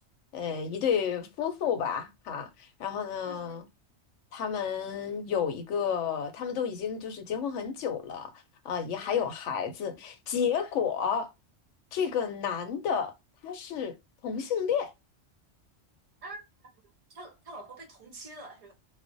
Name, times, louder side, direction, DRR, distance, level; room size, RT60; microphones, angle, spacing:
voice 1, 0.3-2.5 2.8-3.7 4.3-8.3 8.6-11.3 11.9-13.1 13.4-13.9 14.2-14.9, left 7 dB, 85° left, 0.9 m, -31 dB
voice 2, 3.2-3.6 9.0-9.2 16.2-16.4 17.1-18.7, right 2 dB, 50° right, 0.4 m, -45 dB
2.4 x 2.0 x 2.5 m
omnidirectional pair, 1.2 m